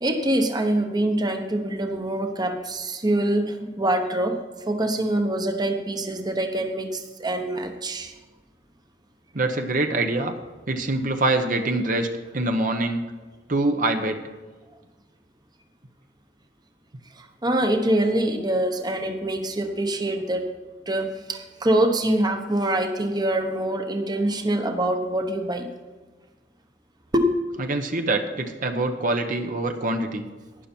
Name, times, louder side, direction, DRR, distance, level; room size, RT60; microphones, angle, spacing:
voice 1, 0.0-8.1 17.1-20.5 20.9-25.7 27.1-27.3, right 1 dB, 20° right, 5 dB, 1.0 m, -25 dB
voice 2, 9.3-10.3 10.7-12.1 12.3-13.0 13.5-14.2 27.7-30.3, right 2 dB, 45° right, 5 dB, 1.0 m, -24 dB
12.5 x 10.0 x 4.5 m, 1.3 s
head